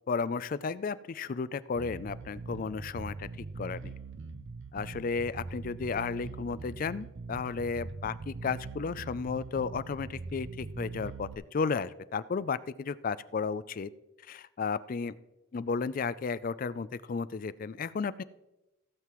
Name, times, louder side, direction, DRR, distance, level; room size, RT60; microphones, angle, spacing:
voice 1, 0.1-3.3 3.6-3.9 4.7-13.9 14.3-15.2 15.5-18.2, left 5 dB, 45° left, 16 dB, 0.4 m, -33 dB
Bass guitar, 1.8-11.4, right 3 dB, 70° right, 0.5 m, -42 dB
16.0 x 7.6 x 3.1 m, 0.95 s
head